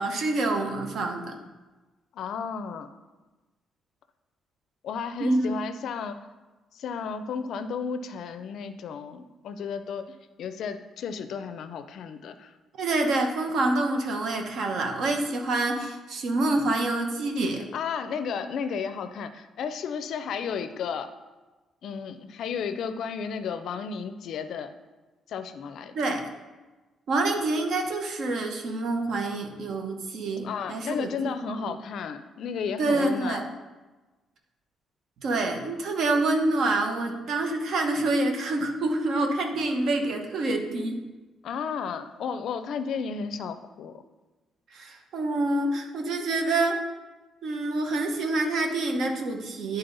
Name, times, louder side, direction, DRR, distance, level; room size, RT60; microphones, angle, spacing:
voice 1, 0.0-1.4 5.2-5.5 12.8-17.6 25.9-26.2 27.1-31.7 32.8-33.4 35.2-41.0 44.7-46.8 47.4-49.8, right 2 dB, 60° right, 3 dB, 0.9 m, -27 dB
voice 2, 2.1-2.9 4.8-6.2 6.7-12.5 17.7-21.1 21.8-24.7 25.3-25.9 30.4-33.4 41.4-44.0, left 6 dB, 60° left, 10 dB, 0.4 m, -33 dB
10.5 x 4.0 x 3.9 m, 1.2 s
cardioid pair, 160°, 0 cm